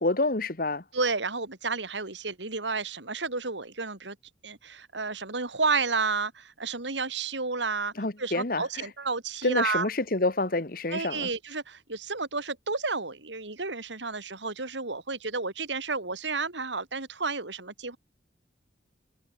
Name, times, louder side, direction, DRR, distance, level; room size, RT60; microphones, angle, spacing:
voice 1, 0.0-0.8 8.0-8.9 9.4-11.3, left 2 dB, 50° left, 1.5 m, -28 dB
voice 2, 0.9-4.2 4.4-7.9 8.2-9.9 10.9-18.0, right 4 dB, 85° right, 3.7 m, -31 dB
head